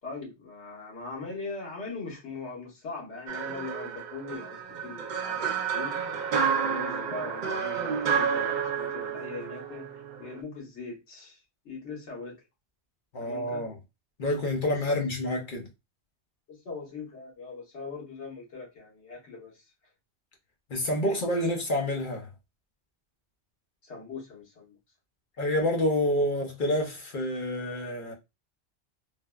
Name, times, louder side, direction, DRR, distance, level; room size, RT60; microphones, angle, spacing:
voice 1, 0.0-6.0 6.6-9.9 10.2-11.4 11.6-12.4 13.2-13.7 14.9-15.0 16.5-19.5 21.0-21.5 23.8-24.8, left 3 dB, 80° left, 1.4 m, -40 dB
sound 1, 3.3-10.4, right 6 dB, 55° right, 0.5 m, -30 dB
voice 2, 13.1-13.7 14.2-15.7 20.7-22.3 25.4-28.1, left 1 dB, 55° left, 0.8 m, -28 dB
3.3 x 2.1 x 2.3 m
omnidirectional pair, 1.1 m